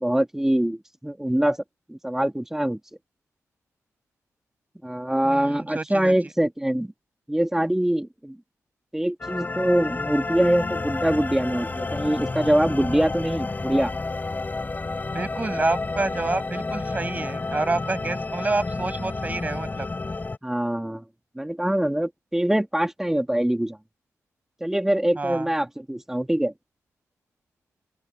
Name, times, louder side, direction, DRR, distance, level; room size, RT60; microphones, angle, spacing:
voice 1, 0.0-1.6 1.9-2.8 4.8-6.9 7.3-8.4 8.9-13.9 20.4-21.0 21.4-23.8 24.6-26.5, right 1 dB, 5° right, 2.3 m, -24 dB
voice 2, 5.2-6.1 15.1-19.9 25.2-25.5, right 3 dB, 25° right, 6.5 m, -28 dB
sound 1, 9.2-20.4, left 3 dB, 30° left, 7.3 m, -30 dB
open air
cardioid pair, 90°, 6 cm